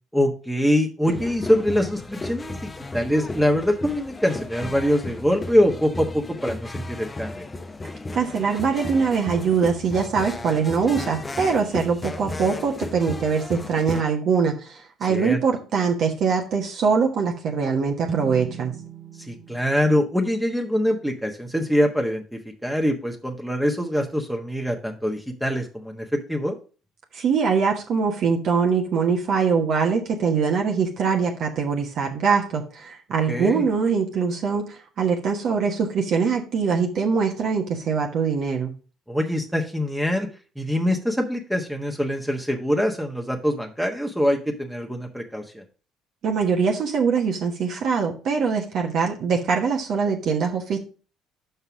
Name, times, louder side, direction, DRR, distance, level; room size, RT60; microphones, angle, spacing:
voice 1, 0.1-7.4 15.1-15.4 19.3-26.5 33.3-33.6 39.1-40.3 40.6-45.6, equal, 5° right, 2 dB, 1.2 m, -24 dB
sound 1, 1.0-14.0, left 2 dB, 25° left, 0.7 m, -35 dB
voice 2, 8.1-18.8 27.1-38.7 46.2-50.8, right 5 dB, 55° right, 1 dB, 1.2 m, -23 dB
sound 2, 18.1-21.6, right 6 dB, 30° right, 1.0 m, -39 dB
5.7 x 5.4 x 6.1 m, 0.37 s
hypercardioid pair, 55°, 0 cm